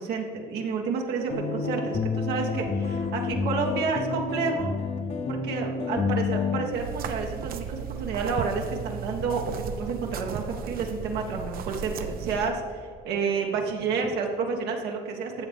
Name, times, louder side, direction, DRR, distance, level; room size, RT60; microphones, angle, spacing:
voice 1, 0.0-4.7 5.3-15.5, right 4 dB, 75° right, 1 dB, 1.4 m, -30 dB
sound 1, 1.3-6.6, left 4 dB, 40° left, 1.2 m, -29 dB
sound 2, 6.7-12.5, right 7 dB, 60° right, 0.7 m, -35 dB
13.0 x 7.5 x 3.6 m, 2.1 s
cardioid pair, 110°, 17 cm